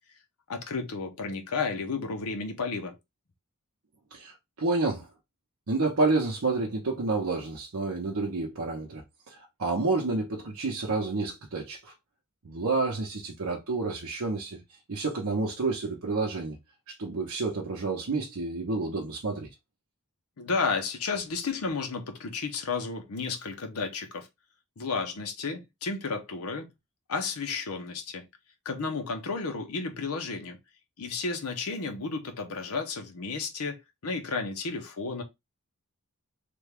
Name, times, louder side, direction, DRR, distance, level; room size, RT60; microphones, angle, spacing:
voice 1, 0.5-2.9 20.4-24.3 24.8-26.7 27.1-28.3 28.6-30.6 31.0-35.2, left 4 dB, 80° left, 0.7 m, -32 dB
voice 2, 4.1-5.1 5.7-11.9 12.4-14.6 14.9-16.6 16.9-19.5, right 3 dB, 70° right, 0.7 m, -29 dB
3.4 x 2.2 x 3.3 m
head